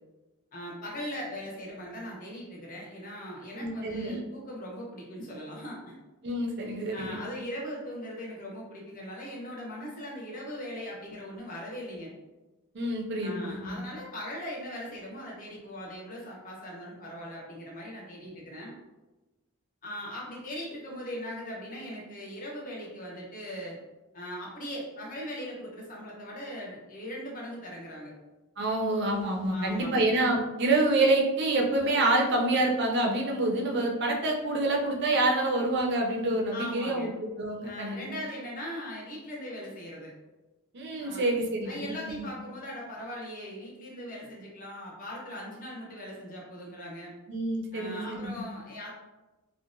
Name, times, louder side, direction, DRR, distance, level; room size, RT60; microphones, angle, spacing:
voice 1, 0.5-6.0 6.9-12.1 13.2-18.7 19.8-23.8 24.1-28.1 29.5-30.1 36.5-37.1 37.6-40.1 41.0-41.2 41.7-47.1 47.7-48.9, equal, 40° left, -3 dB, 0.6 m, -40 dB
voice 2, 3.6-4.2 6.2-7.2 12.7-13.8 28.6-37.1 37.4-38.1 40.7-42.3 47.3-48.4, right 2 dB, 50° right, 0 dB, 0.4 m, -27 dB
2.8 x 2.1 x 2.5 m, 1.1 s
head